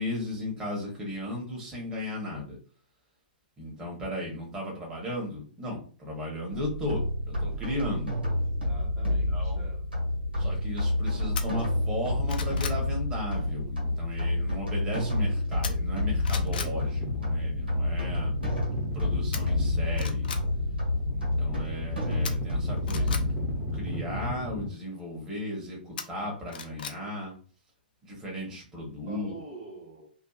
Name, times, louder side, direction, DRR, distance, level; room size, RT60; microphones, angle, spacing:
voice 1, 0.0-2.6 3.6-8.1 9.3-9.7 10.4-18.3 18.9-20.3 21.1-27.4 28.0-29.3, left 1 dB, 15° right, -3 dB, 1.0 m, -36 dB
sound 1, 6.5-23.7, left 1 dB, 85° right, 1.4 m, -29 dB
voice 2, 8.2-9.9 29.1-30.1, right 3 dB, 40° right, -1 dB, 1.0 m, -47 dB
sound 2, 11.3-11.5 12.0-12.8 15.6-16.0 16.2-16.7 19.3-19.4 19.9-20.4 22.2-23.2 26.0-27.0 27.3-27.4, left 6 dB, 60° left, 0.5 m, -36 dB
sound 3, 16.1-24.7, left 2 dB, 20° left, 0.7 m, -35 dB
2.6 x 2.5 x 2.4 m, 0.40 s
figure-of-eight pair, 115°, 5 cm